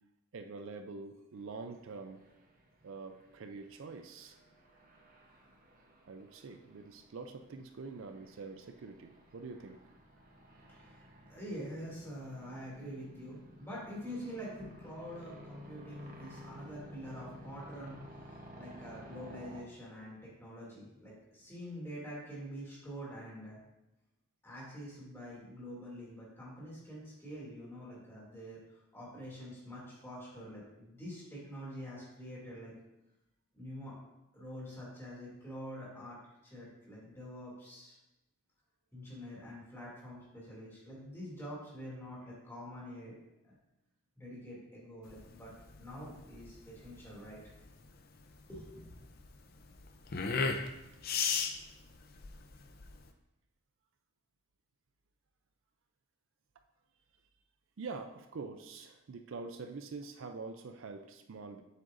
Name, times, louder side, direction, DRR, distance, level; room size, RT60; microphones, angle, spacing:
voice 1, 0.3-2.2 2.8-4.4 6.0-9.8 57.8-61.6, right 4 dB, 60° right, 7 dB, 0.4 m, -45 dB
sound 1, 1.3-19.6, equal, 40° right, 0.9 m, -54 dB
voice 2, 10.7-23.6 24.4-32.7 33.5-34.0 34.3-36.2 36.4-37.9 38.9-43.1 44.2-45.5 45.8-47.5 48.5-48.9, equal, 10° left, -6 dB, 2.5 m, -46 dB
sound 2, 45.1-53.1, left 5 dB, 45° left, 0.5 m, -37 dB
7.7 x 7.6 x 2.6 m, 0.93 s
head